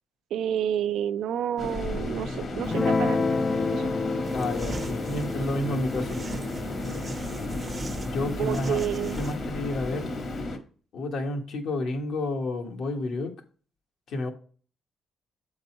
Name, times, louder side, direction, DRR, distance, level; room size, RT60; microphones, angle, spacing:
voice 1, 0.3-3.2 3.7-3.9 8.4-9.2, right 10 dB, 80° right, 0.4 m, -29 dB
sound 1, 1.6-10.6, left 2 dB, 50° left, 1.4 m, -34 dB
Guitar, 2.6-9.2, left 4 dB, 35° left, 0.4 m, -30 dB
sound 2, 4.2-9.4, right 3 dB, 30° right, 0.6 m, -40 dB
voice 2, 4.3-6.2 8.1-8.8 9.2-10.1 10.9-13.3 14.1-14.3, left 2 dB, 70° left, 1.5 m, -30 dB
7.8 x 4.0 x 4.5 m
cardioid pair, 90°, 0 cm